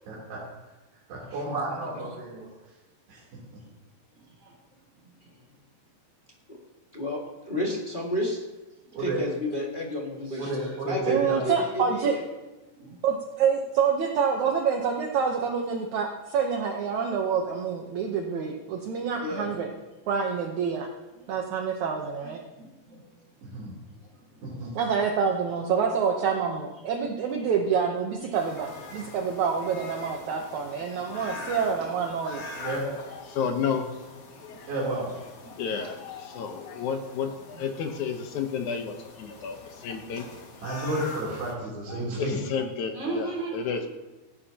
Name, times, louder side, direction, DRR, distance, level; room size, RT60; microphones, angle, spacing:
voice 1, 0.1-0.4 1.1-2.5 3.1-3.2 8.9-9.2 10.4-11.4 23.4-23.7 24.4-24.7 32.6-33.2 34.7-35.0 40.6-42.4, right 2 dB, 85° right, -7 dB, 5.5 m, -32 dB
voice 2, 7.5-8.4 9.0-12.2 19.2-19.5, left 1 dB, 35° left, -3 dB, 0.7 m, -31 dB
voice 3, 10.3-10.9 12.8-13.0 20.6-20.7 21.2-21.3 22.2-23.1 24.3-24.5 25.7-25.8 26.7-26.8 28.2-28.3 28.7-29.0 29.9-30.0 31.0-31.4 31.7-31.9 34.5-35.8 36.3-36.4 42.9-43.9, right 3 dB, 20° right, -3 dB, 5.4 m, -40 dB
voice 4, 11.0-12.1 13.0-19.7 20.1-20.9 21.3-22.4 24.7-32.4, right 6 dB, 70° right, 1 dB, 1.9 m, -27 dB
sound 1, 28.3-41.5, left 3 dB, 50° left, 3.1 m, -44 dB
voice 5, 32.6-33.9 34.4-34.7 35.4-40.3 41.9-43.3 43.5-43.9, left 6 dB, 70° left, 5 dB, 1.9 m, -32 dB
28.0 x 11.5 x 2.9 m, 1.1 s
omnidirectional pair, 4.6 m